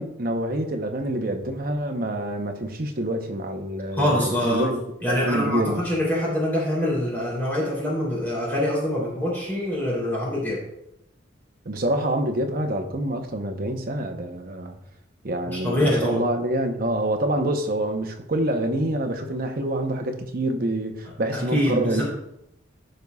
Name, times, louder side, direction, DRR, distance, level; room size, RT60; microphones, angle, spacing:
voice 1, 0.0-5.9 11.7-14.8 15.2-22.0, right 1 dB, 45° right, 0.8 m, -26 dB
voice 2, 4.0-4.6 5.0-10.6 15.4-16.2 21.3-22.0, left 1 dB, 10° left, 3.1 m, -24 dB
15.5 x 5.5 x 2.3 m
head